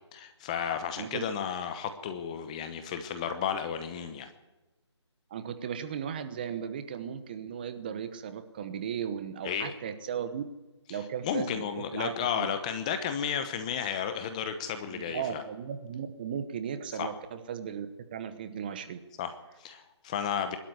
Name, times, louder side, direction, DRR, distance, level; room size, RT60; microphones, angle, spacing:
voice 1, 0.1-4.3 9.4-9.7 10.9-11.0 11.2-15.4 17.0-17.1 19.2-20.6, left 8 dB, 15° left, 9 dB, 1.0 m, -33 dB
voice 2, 5.3-10.4 10.9-11.6 11.9-12.5 14.9-19.0, right 8 dB, 20° right, 10 dB, 1.0 m, -36 dB
22.0 x 13.0 x 9.6 m, 1.1 s
hypercardioid pair, 165°, 15 cm